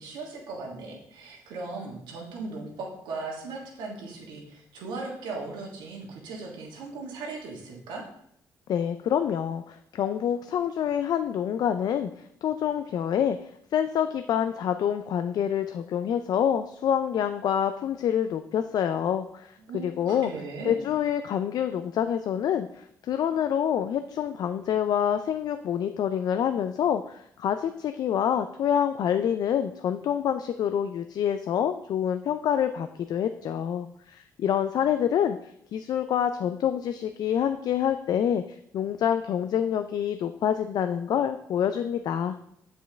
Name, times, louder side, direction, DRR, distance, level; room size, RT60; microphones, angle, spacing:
voice 1, 0.0-8.0 19.7-20.8, right 3 dB, 90° right, -1 dB, 1.5 m, -38 dB
voice 2, 8.7-12.1 12.4-20.3 20.6-38.4 38.7-42.3, left 9 dB, 65° left, 9 dB, 0.3 m, -27 dB
7.3 x 4.5 x 3.4 m, 0.71 s
cardioid pair, 80°, 7 cm